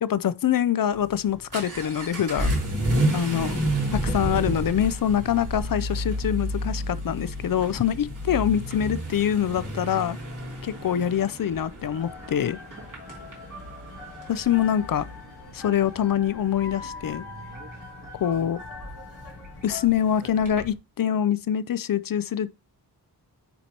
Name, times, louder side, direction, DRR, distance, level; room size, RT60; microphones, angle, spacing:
voice 1, 0.0-2.6 3.1-10.2 10.6-12.6 14.3-15.1 15.5-17.2 18.2-18.6 19.6-22.6, left 9 dB, 60° left, 0.5 m, -25 dB
Vehicle / Accelerating revving vroom, 0.9-20.7, right 1 dB, 50° right, 2.9 m, -31 dB
sound 1, 11.9-19.9, left 3 dB, 85° left, 2.2 m, -42 dB
9.4 x 4.5 x 2.8 m
wide cardioid pair, 115°, 39 cm